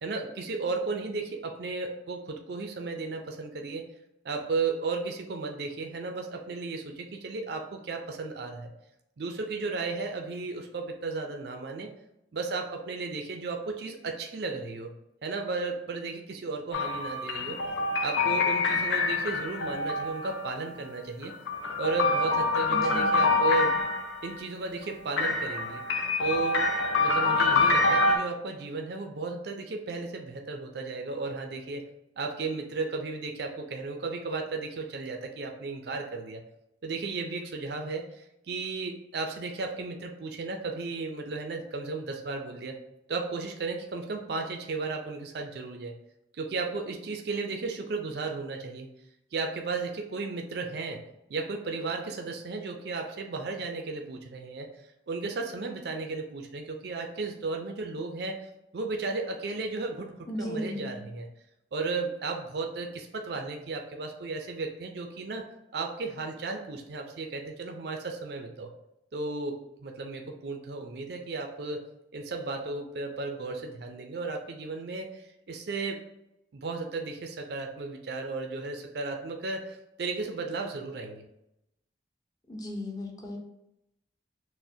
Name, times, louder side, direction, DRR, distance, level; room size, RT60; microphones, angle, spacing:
voice 1, 0.0-3.8 4.2-8.7 9.2-11.9 12.3-14.9 15.2-17.6 18.0-21.3 21.8-23.8 24.2-25.8 26.2-26.7 27.0-31.8 32.2-36.4 36.8-42.7 43.1-45.9 46.3-48.9 49.3-51.0 51.3-54.7 55.1-60.1 60.4-61.3 61.7-65.5 65.7-68.7 69.1-71.8 72.1-76.0 76.5-81.2, right 3 dB, 60° right, 3 dB, 0.4 m, -34 dB
sound 1, 16.7-20.5 21.2-24.3 25.2-28.2, left 3 dB, 75° left, 0.5 m, -26 dB
voice 2, 22.7-23.3 60.3-61.0 82.5-83.4, left 1 dB, 20° left, 0 dB, 0.6 m, -36 dB
6.1 x 2.1 x 2.7 m, 0.85 s
head